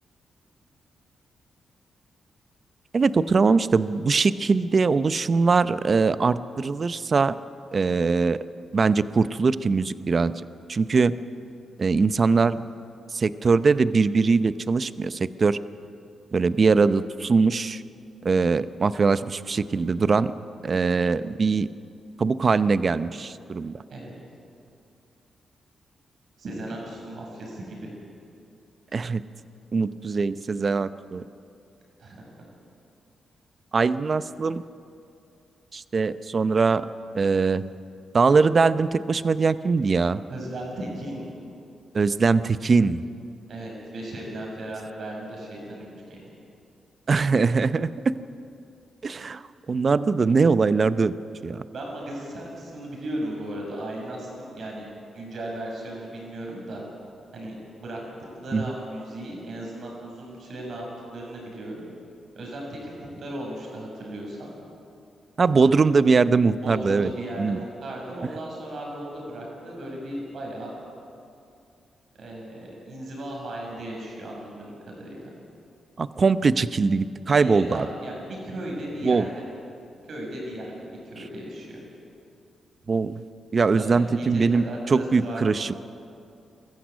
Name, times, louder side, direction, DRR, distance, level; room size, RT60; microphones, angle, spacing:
voice 1, 2.9-7.4 7.7-8.4 8.7-10.3 10.7-11.1 11.8-12.6 13.1-15.6 16.3-17.8 18.2-20.3 20.6-21.7 22.2-23.8 28.9-29.2 29.7-31.2 33.7-34.6 35.7-36.9 37.1-37.6 38.1-40.2 41.9-43.0 47.1-48.1 49.0-49.4 49.7-51.1 51.4-51.6 58.5-58.7 65.4-67.1 67.4-67.6 76.0-77.9 79.0-79.3 82.9-83.1 83.5-85.7, right 4 dB, 45° right, 15 dB, 0.7 m, -22 dB
voice 2, 26.4-27.9 32.0-32.2 40.3-41.2 43.5-46.3 51.7-54.9 55.1-56.8 57.3-57.5 57.8-58.0 58.4-60.9 61.1-61.8 62.3-64.5 66.6-70.7 72.2-75.4 77.4-79.4 80.0-81.7 83.7-85.6, right 1 dB, 65° right, -1 dB, 6.7 m, -36 dB
22.0 x 14.5 x 8.4 m, 2.5 s
cardioid pair, 70°, 0 cm